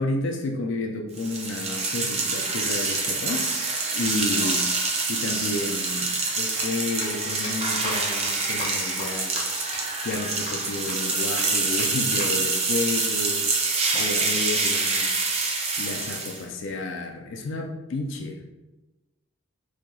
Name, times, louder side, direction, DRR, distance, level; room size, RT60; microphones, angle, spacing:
voice 1, 0.0-3.5 3.9-4.7 5.1-9.6 10.0-15.4 15.8-18.4, left 2 dB, 65° left, 2 dB, 0.4 m, -31 dB
sound 1, 1.2-16.4, right 3 dB, 30° right, 0.4 m, -26 dB
sound 2, 6.6-6.7 7.0-7.1 7.4-7.5 7.8-7.9 8.2-8.3 8.6-8.7 9.0-9.1 9.4-9.5 9.7-9.8 10.1-10.2 10.5-10.6 10.9-11.0 11.4-11.5 11.8-11.9 12.2-12.3 13.9-15.0, left 1 dB, 35° left, 1.4 m, -37 dB
4.2 x 2.7 x 2.3 m, 1.0 s
head